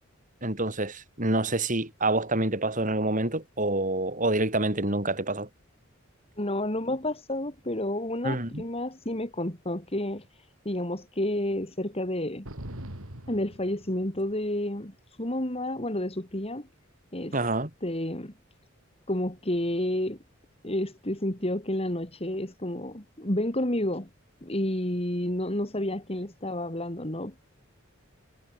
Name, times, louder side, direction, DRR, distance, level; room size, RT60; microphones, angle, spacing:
voice 1, 0.4-5.5 8.2-8.6 17.3-17.7, right 2 dB, 40° right, 5.0 m, -27 dB
voice 2, 6.4-12.5 13.3-16.7 17.1-17.4 17.8-18.3 19.1-20.2 20.6-24.1 24.4-27.5, left 1 dB, 30° left, 3.3 m, -30 dB
sound 1, 12.5-14.4, right 1 dB, 80° right, 5.4 m, -42 dB
head